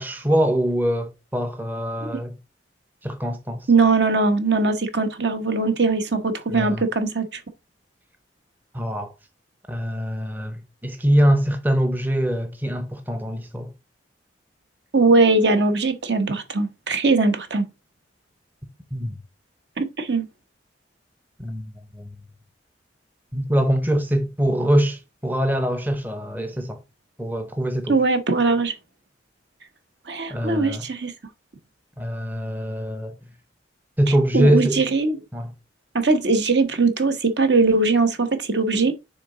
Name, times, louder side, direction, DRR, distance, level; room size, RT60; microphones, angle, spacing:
voice 1, 0.0-2.4 3.0-3.7 6.5-6.8 8.7-9.1 9.7-13.7 18.9-19.2 21.4-22.1 23.3-26.8 27.2-28.0 30.3-30.8 32.0-33.2 34.0-34.8 35.3-35.5, equal, 10° right, 0.6 m, -23 dB
voice 2, 3.7-7.4 14.9-17.6 19.8-20.2 27.9-28.7 30.1-31.1 34.3-35.2 35.9-38.9, right 3 dB, 60° right, 1.1 m, -20 dB
6.5 x 4.0 x 3.8 m
head